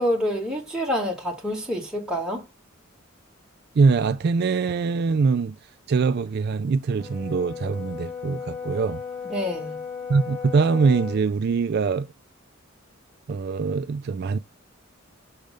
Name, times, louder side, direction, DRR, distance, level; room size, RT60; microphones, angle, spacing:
voice 1, 0.0-2.4 9.3-9.8, equal, 5° right, 1.8 m, -27 dB
voice 2, 3.8-5.6 5.9-9.0 10.1-12.1 13.3-14.4, right 4 dB, 50° right, 0.3 m, -23 dB
Brass instrument, 7.0-11.3, left 6 dB, 40° left, 2.1 m, -35 dB
6.4 x 3.4 x 5.1 m
head